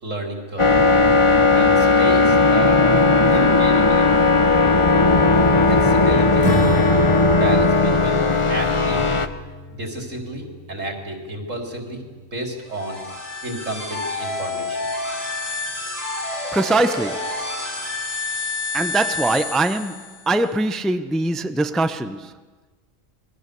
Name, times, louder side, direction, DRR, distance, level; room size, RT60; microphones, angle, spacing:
voice 1, 0.0-0.7 1.5-2.9 3.3-4.3 5.7-6.6 7.3-8.2 8.5-9.1 9.7-13.0 13.4-14.9, right 1 dB, 75° right, 4.2 m, -31 dB
sound 1, 0.6-9.3, left 3 dB, 25° left, 1.0 m, -16 dB
Acoustic guitar / Strum, 6.4-12.3, left 1 dB, 70° left, 3.2 m, -30 dB
sound 2, 12.6-20.3, left 3 dB, 90° left, 5.0 m, -29 dB
voice 2, 16.5-17.3 18.7-22.3, right 2 dB, ahead, 0.6 m, -22 dB
28.0 x 22.0 x 6.9 m
omnidirectional pair, 1.3 m